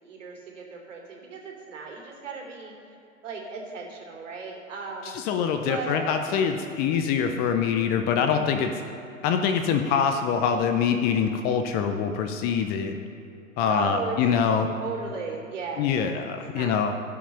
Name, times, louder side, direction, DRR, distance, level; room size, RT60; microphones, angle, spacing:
voice 1, 0.0-2.7 3.2-5.1 5.7-6.0 13.7-14.2 14.8-15.9 16.2-16.7, right 5 dB, 65° right, 0 dB, 3.2 m, -36 dB
voice 2, 5.0-8.7 9.2-13.0 13.6-14.7 15.8-16.9, left 7 dB, 25° left, 6 dB, 0.6 m, -24 dB
17.0 x 5.8 x 5.7 m, 2.6 s
figure-of-eight pair, 105°, 40 cm